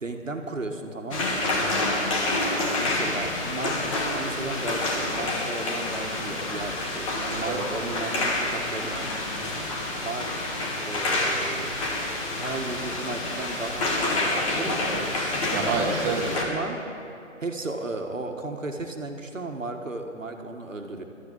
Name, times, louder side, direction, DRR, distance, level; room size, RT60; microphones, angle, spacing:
voice 1, 0.0-1.4 2.6-9.1 10.0-10.3 10.9-11.9 12.4-14.8 16.3-16.8 17.4-21.0, right 2 dB, 80° right, 4 dB, 1.6 m, -34 dB
sound 1, 1.1-16.4, left 2 dB, 25° left, 1.6 m, -28 dB
voice 2, 9.3-9.6 14.8-15.0 15.5-16.7, right 4 dB, 15° right, -1 dB, 1.6 m, -29 dB
12.5 x 8.3 x 8.7 m, 2.8 s
figure-of-eight pair, 140°, 38 cm